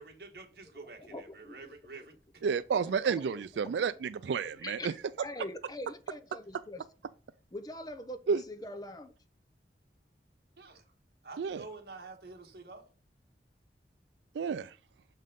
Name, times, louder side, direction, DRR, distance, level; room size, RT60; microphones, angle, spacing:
voice 1, 0.0-2.4 3.0-3.3 10.6-10.8 11.2-12.9, right 3 dB, 60° right, 1.6 m, -49 dB
voice 2, 1.1-1.7 2.7-3.7 4.3-5.0 5.2-6.9 7.5-9.1, left 1 dB, 20° left, 0.6 m, -44 dB
voice 3, 2.4-4.9 8.3-8.4 11.4-11.6 14.4-14.7, right 6 dB, 85° right, 0.3 m, -30 dB
6.4 x 5.4 x 3.7 m
head